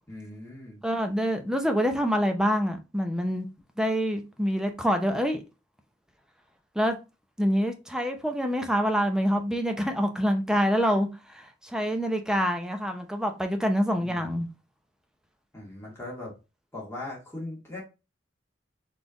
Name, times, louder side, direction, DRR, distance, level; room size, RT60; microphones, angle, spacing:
voice 1, 0.1-0.8 14.0-14.4 15.5-16.3 16.7-17.8, left 2 dB, 15° left, 1.9 m, -39 dB
voice 2, 0.8-3.5 3.8-5.4 6.8-7.0 7.4-14.5, equal, 5° right, 0.6 m, -26 dB
4.2 x 3.3 x 3.8 m
head